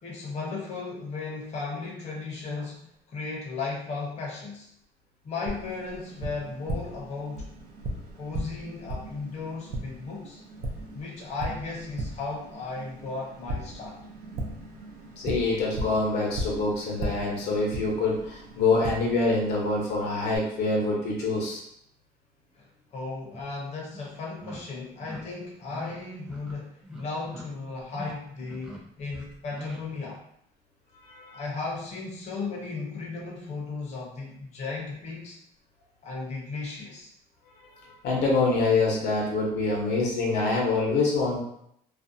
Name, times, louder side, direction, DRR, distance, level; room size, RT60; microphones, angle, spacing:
voice 1, 0.0-4.7 5.2-7.5 8.2-10.4 10.9-14.0 22.5-30.2 31.3-35.4 36.0-37.1, left 3 dB, 40° left, -3 dB, 0.7 m, -35 dB
Tap, 5.5-20.4, right 1 dB, 65° right, 0.5 m, -38 dB
voice 2, 15.2-21.6 31.0-31.4 37.7-41.4, left 3 dB, 75° left, -2 dB, 0.8 m, -25 dB
sound 1, 23.3-23.4 23.9-24.1 24.4-24.6 25.0-25.2 25.7-26.0 26.2-26.5 26.8-27.4 27.8-28.1 28.4-28.8 29.1-29.8, left 1 dB, 5° right, 0.6 m, -41 dB
2.5 x 2.1 x 2.6 m, 0.72 s
cardioid pair, 110°, 17 cm